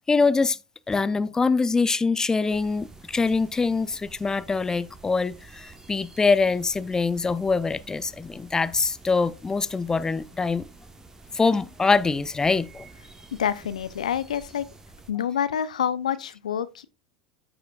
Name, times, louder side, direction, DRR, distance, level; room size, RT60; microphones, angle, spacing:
voice 1, 0.1-0.6 0.9-10.6 11.3-12.9, left 4 dB, 15° left, 0.5 m, -24 dB
sound 1, 2.5-15.1, right 3 dB, 15° right, 1.1 m, -49 dB
voice 2, 13.4-14.7 15.1-16.8, left 9 dB, 85° left, 0.6 m, -27 dB
14.0 x 4.9 x 2.4 m
hypercardioid pair, 85°, 4 cm